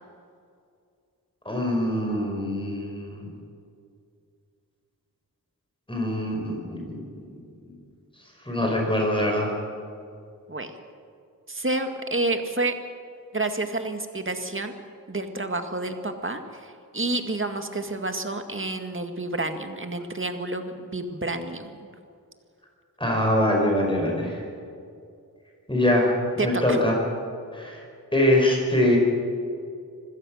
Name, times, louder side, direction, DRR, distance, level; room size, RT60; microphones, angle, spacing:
voice 1, 1.5-3.2 5.9-7.0 8.5-9.5 23.0-24.4 25.7-27.0 27.5-27.8 28.1-29.0, left 1 dB, 15° left, -1 dB, 5.3 m, -23 dB
voice 2, 11.5-12.8 13.3-14.8 15.1-21.7 26.4-26.8, right 2 dB, 35° right, 6 dB, 2.0 m, -29 dB
25.5 x 16.5 x 6.5 m, 2.4 s
wide cardioid pair, 65°, 36 cm